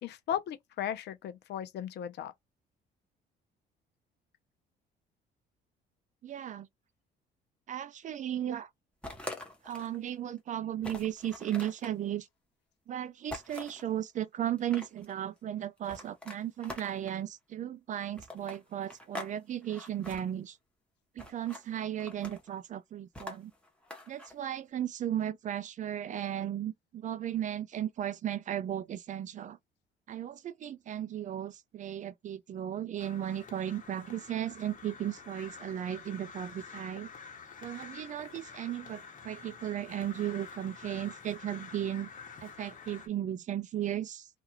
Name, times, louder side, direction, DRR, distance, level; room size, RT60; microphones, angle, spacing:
voice 1, 0.0-2.3, left 10 dB, 65° left, 0.7 m, -36 dB
voice 2, 6.2-6.7 7.7-8.7 9.6-12.3 12.9-20.6 21.2-23.5 24.1-29.6 30.1-37.1 37.6-42.1 42.4-44.3, right 11 dB, 40° right, 0.4 m, -35 dB
sound 1, 9.0-10.0 10.4-10.5 10.8-11.9 13.3-13.9 14.5-15.1 15.8-17.2 18.2-19.3 19.6-20.2 21.2-21.6 22.0-22.5 23.1-24.3, left 1 dB, 5° left, 1.0 m, -44 dB
Crow, 33.0-43.1, left 5 dB, 45° left, 1.2 m, -49 dB
2.4 x 2.4 x 2.9 m
cardioid pair, 95°, 19 cm